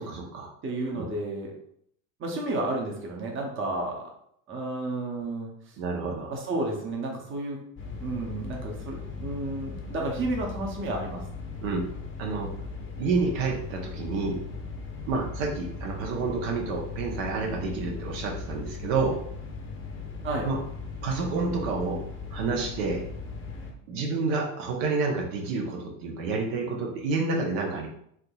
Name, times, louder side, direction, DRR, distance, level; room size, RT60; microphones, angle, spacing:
voice 1, 0.0-0.5 0.9-1.1 5.8-6.3 11.6-11.9 12.2-12.5 13.0-14.4 15.1-19.2 20.4-20.6 21.0-22.0 22.3-23.0 23.9-27.9, right 4 dB, 75° right, 0 dB, 0.9 m, -29 dB
voice 2, 0.6-1.5 2.2-4.0 4.5-5.5 6.3-7.6 8.0-11.2 20.2-20.5, right 2 dB, 30° right, 0 dB, 0.8 m, -31 dB
sound 1, 7.8-23.7, left 4 dB, 30° left, 0.7 m, -38 dB
3.6 x 2.8 x 2.3 m, 0.69 s
supercardioid pair, 100°, 41 cm